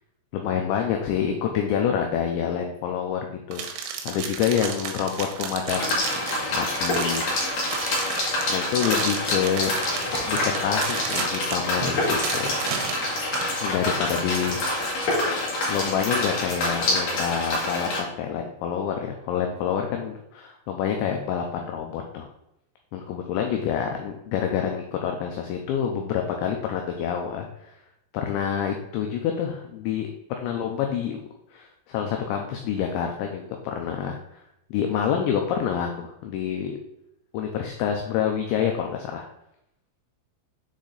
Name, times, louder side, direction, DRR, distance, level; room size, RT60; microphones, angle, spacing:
voice 1, 0.3-6.0 6.3-7.3 8.5-9.7 10.2-12.5 13.6-14.6 15.7-22.3 22.9-27.7 28.1-31.2 31.5-34.4 34.7-36.8 37.3-39.2, left 8 dB, 85° left, 3 dB, 2.6 m, -27 dB
sound 1, 3.5-13.5, right 7 dB, 80° right, 3.3 m, -33 dB
sound 2, 5.7-18.0, left 1 dB, 60° left, 1.9 m, -26 dB
8.2 x 3.8 x 3.9 m, 0.83 s
omnidirectional pair, 5.8 m